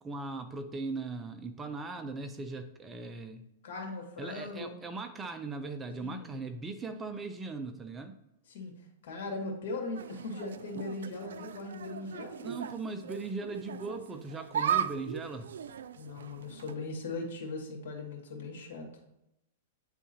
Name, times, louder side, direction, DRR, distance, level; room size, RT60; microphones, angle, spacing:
voice 1, 0.0-3.4 4.2-8.1 12.4-15.5, right 3 dB, 15° right, 8 dB, 0.4 m, -39 dB
voice 2, 3.6-4.7 6.0-6.3 8.5-8.7 9.0-12.5 16.0-18.9, left 3 dB, 65° left, 1 dB, 2.0 m, -39 dB
sound 1, 9.9-16.7, right 8 dB, 90° right, 0.3 m, -37 dB
9.7 x 3.6 x 2.8 m, 0.86 s
hypercardioid pair, 145°, 0 cm